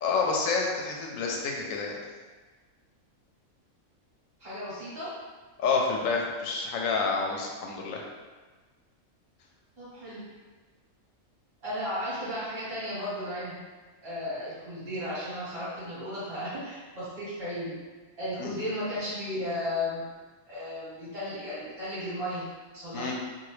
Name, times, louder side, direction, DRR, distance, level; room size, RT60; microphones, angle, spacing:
voice 1, 0.0-2.0 5.6-8.0 18.4-18.5 22.9-23.2, left 4 dB, 75° left, 0 dB, 1.0 m, -28 dB
voice 2, 4.4-5.2 9.8-10.2 11.6-13.6 14.0-17.8 18.2-20.0 20.5-22.5 22.7-23.1, left 1 dB, 45° right, -11 dB, 1.5 m, -34 dB
2.8 x 2.5 x 3.1 m, 1.3 s
omnidirectional pair, 1.4 m